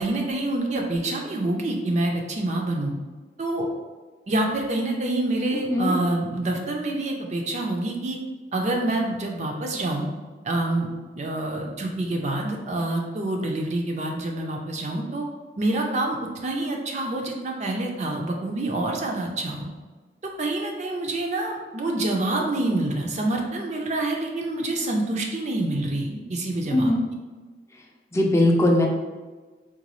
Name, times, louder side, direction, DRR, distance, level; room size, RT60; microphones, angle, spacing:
voice 1, 0.0-2.9 3.4-3.7 4.3-8.2 8.5-10.1 10.4-10.9 11.1-15.2 15.6-16.2 16.4-19.7 20.2-26.9, right 2 dB, 40° right, 1 dB, 0.4 m, -27 dB
voice 2, 26.7-27.0 28.1-28.9, left 1 dB, 15° left, 0 dB, 0.4 m, -20 dB
3.8 x 2.3 x 3.0 m, 1.3 s
head